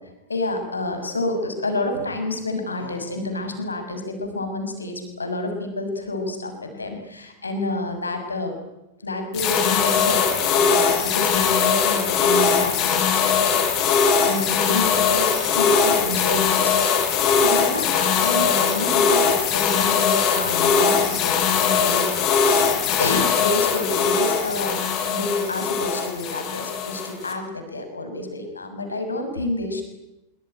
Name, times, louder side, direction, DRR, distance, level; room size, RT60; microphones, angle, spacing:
voice 1, 0.3-8.5 9.0-22.3 23.0-29.8, left 2 dB, 80° left, 6 dB, 6.5 m, -29 dB
sound 1, 9.3-27.3, left 6 dB, 40° left, 6.1 m, -20 dB
25.5 x 23.5 x 9.2 m, 0.95 s
figure-of-eight pair, 90°, 0 cm